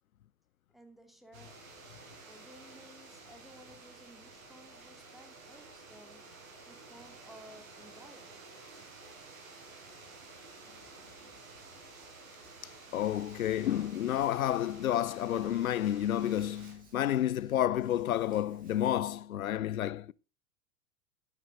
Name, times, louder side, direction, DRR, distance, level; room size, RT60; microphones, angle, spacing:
voice 1, 0.7-1.6 2.3-6.2 6.6-8.4, equal, ahead, 2.7 m, -56 dB
sound 1, 1.3-16.7, right 3 dB, 65° right, 5.4 m, -52 dB
voice 2, 12.6-20.1, left 11 dB, 75° left, 0.6 m, -30 dB
Hands, 12.9-19.0, right 3 dB, 20° right, 6.6 m, -60 dB
13.5 x 10.0 x 3.9 m
figure-of-eight pair, 90°, 43 cm